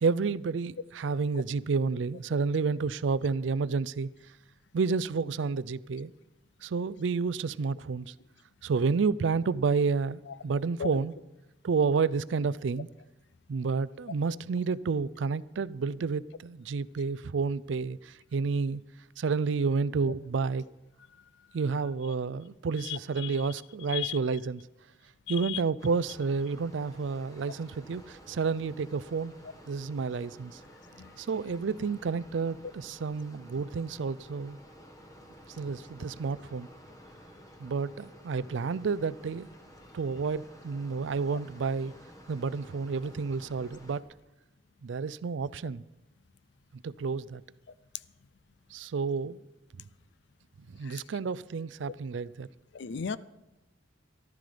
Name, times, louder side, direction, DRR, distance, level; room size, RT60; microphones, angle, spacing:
voice 1, 0.0-4.1 4.7-6.1 6.6-8.1 8.6-11.1 11.6-12.9 13.5-18.8 19.2-20.6 21.5-24.6 25.3-29.3 29.7-30.6 31.2-34.6 35.6-36.7 37.6-39.5 39.9-41.9 42.3-44.0 44.8-45.8 46.8-47.4 48.7-49.4 50.7-52.5, right 5 dB, 75° right, 0.4 m, -30 dB
voice 2, 22.8-23.3 23.9-24.2 25.3-25.6 31.0-31.1 50.8-51.0 52.7-53.2, left 8 dB, 65° left, 0.5 m, -35 dB
sound 1, 25.8-44.0, equal, 20° left, 1.3 m, -52 dB
14.0 x 12.0 x 5.0 m
head